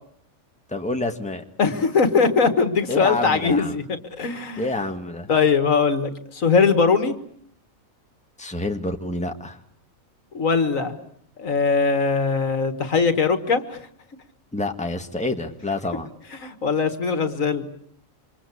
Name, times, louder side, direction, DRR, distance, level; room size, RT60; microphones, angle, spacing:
voice 1, 0.7-1.4 2.9-3.8 4.6-5.3 8.4-9.6 14.5-16.1, left 2 dB, 5° left, 5 dB, 1.8 m, -28 dB
voice 2, 1.6-4.7 5.3-7.1 10.3-11.0 11.4-13.8 16.3-17.7, left 5 dB, 70° left, 10 dB, 2.1 m, -21 dB
28.0 x 25.0 x 8.5 m, 0.66 s
omnidirectional pair, 1.4 m